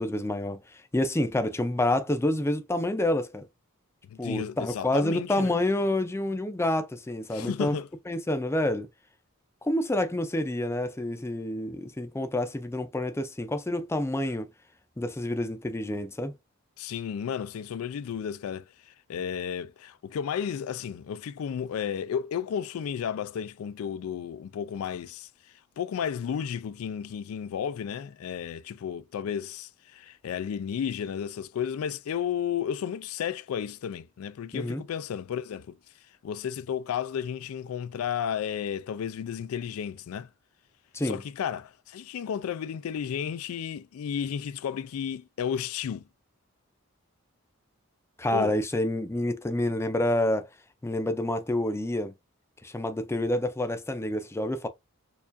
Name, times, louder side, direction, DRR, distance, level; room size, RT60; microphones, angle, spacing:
voice 1, 0.0-3.5 4.2-7.7 8.1-8.9 9.6-14.5 15.0-16.3 34.5-34.8 40.9-41.2 48.2-50.5 50.8-52.1 52.6-54.7, left 1 dB, 10° left, 0.4 m, -28 dB
voice 2, 4.1-5.6 7.3-7.9 16.8-25.3 25.8-35.8 36.2-40.3 41.0-46.0 48.3-48.5, left 8 dB, 85° left, 0.3 m, -33 dB
4.5 x 2.4 x 2.6 m
head